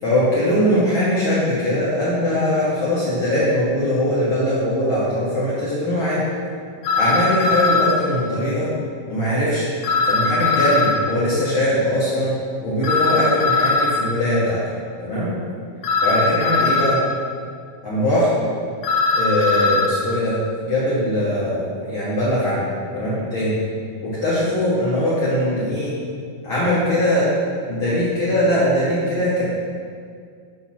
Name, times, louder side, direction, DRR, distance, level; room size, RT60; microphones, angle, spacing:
voice 1, 0.0-6.2 6.9-8.7 9.1-9.7 10.0-12.3 12.6-14.6 15.0-15.3 16.0-17.0 17.8-18.3 19.1-22.6 22.9-23.6 24.0-25.9 26.4-27.3 27.7-29.4, left 1 dB, 55° left, -10 dB, 1.6 m, -21 dB
sound 1, 6.8-8.0 9.8-11.0 12.8-14.0 15.8-17.0 18.8-19.9, left 3 dB, 80° left, 2.1 m, -19 dB
8.4 x 3.1 x 5.8 m, 2.2 s
omnidirectional pair, 3.8 m